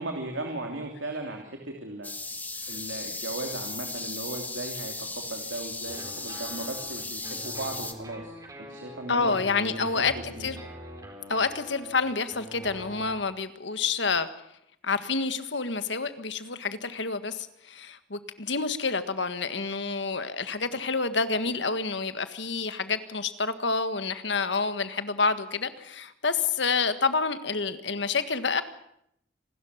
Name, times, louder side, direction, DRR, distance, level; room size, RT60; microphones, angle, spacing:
voice 1, 0.0-2.1 2.7-8.3 8.6-9.4 9.7-10.0 10.3-10.5, right 2 dB, 85° right, 3 dB, 3.0 m, -37 dB
sound 1, 2.0-7.9, left 3 dB, 10° left, 1.7 m, -36 dB
sound 2, 5.9-13.2, equal, 20° right, 4.3 m, -44 dB
voice 2, 9.1-10.6 11.3-14.3 14.8-28.6, left 4 dB, 65° left, 11 dB, 1.7 m, -28 dB
26.5 x 13.0 x 9.6 m, 0.75 s
head